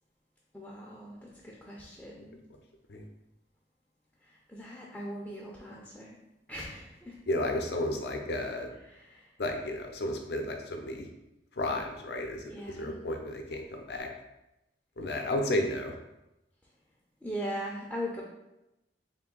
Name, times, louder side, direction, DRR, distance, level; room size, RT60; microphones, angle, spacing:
voice 1, 0.5-1.2 1.4-2.4 4.5-6.2 6.5-7.1 8.9-9.2 12.5-13.0 17.2-18.2, equal, 5° left, -4 dB, 0.5 m, -39 dB
voice 2, 7.3-8.7 9.4-11.1 11.6-14.1 15.0-15.9, left 1 dB, 65° left, 3 dB, 0.6 m, -32 dB
3.7 x 2.6 x 3.8 m, 0.91 s
head